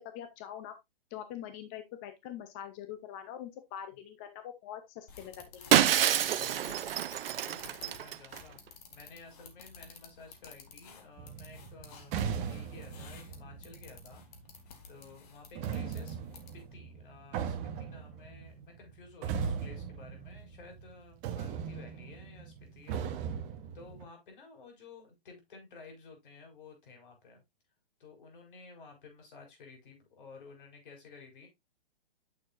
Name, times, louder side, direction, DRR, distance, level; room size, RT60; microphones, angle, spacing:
voice 1, 0.1-0.7 1.1-5.8, left 10 dB, 15° left, 8 dB, 0.3 m, -44 dB
sound 1, 5.1-16.7, left 6 dB, 40° left, 1.8 m, -54 dB
Shatter, 5.7-8.4, right 10 dB, 70° right, 0.6 m, -27 dB
voice 2, 6.2-6.7 7.3-12.2 12.5-14.2 14.9-16.2 16.5-23.1 23.7-27.4 28.0-31.5, left 4 dB, 55° left, 3 dB, 4.6 m, -53 dB
sound 2, 11.2-14.6 15.6-20.9 21.2-24.1, right 7 dB, 25° right, 0.9 m, -38 dB
9.0 x 6.4 x 2.4 m, 0.19 s
hypercardioid pair, 140°, 30 cm